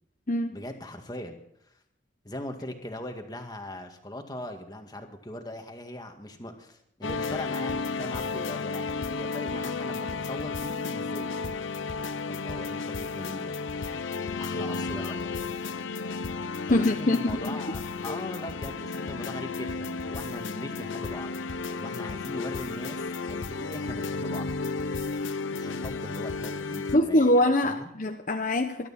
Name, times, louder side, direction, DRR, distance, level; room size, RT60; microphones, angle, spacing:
voice 1, 0.5-1.4 2.2-11.3 12.3-13.6 14.4-15.6 16.7-21.3 21.8-24.5 25.6-27.9, left 1 dB, 20° left, 4 dB, 1.9 m, -40 dB
sound 1, 7.0-27.0, left 4 dB, 80° left, 0.9 m, -33 dB
voice 2, 16.7-17.6 18.1-18.2 26.9-28.9, left 1 dB, 40° left, 4 dB, 1.0 m, -24 dB
21.5 x 12.0 x 4.3 m, 0.75 s
head